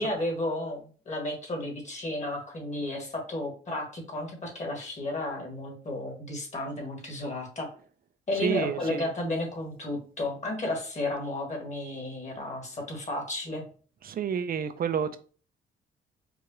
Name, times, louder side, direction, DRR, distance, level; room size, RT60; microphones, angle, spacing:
voice 1, 0.0-7.7 8.3-13.6, left 2 dB, 35° left, 1.8 m, -33 dB
voice 2, 8.4-9.1 14.0-15.2, right 7 dB, 50° right, 0.5 m, -29 dB
4.7 x 2.5 x 2.9 m
cardioid pair, 90°, 20 cm